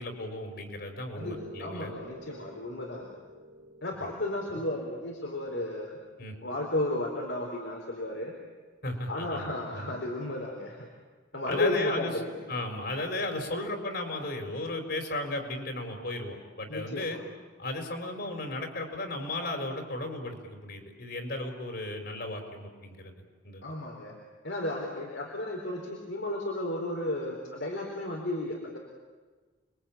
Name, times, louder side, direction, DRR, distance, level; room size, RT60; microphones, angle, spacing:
voice 1, 0.0-1.9 6.2-6.4 8.8-9.9 11.5-12.1 12.5-17.2 17.6-23.1 23.4-23.6, left 2 dB, 55° left, 4 dB, 4.7 m, -35 dB
voice 2, 1.1-3.1 3.8-6.0 6.4-8.3 9.1-10.9 11.3-12.4 16.7-17.2 23.6-24.2 24.4-28.8, left 1 dB, 75° left, 0 dB, 4.1 m, -33 dB
Piano, 1.2-9.3, equal, 60° right, 4.4 m, -51 dB
29.5 x 22.5 x 8.8 m, 1.4 s
head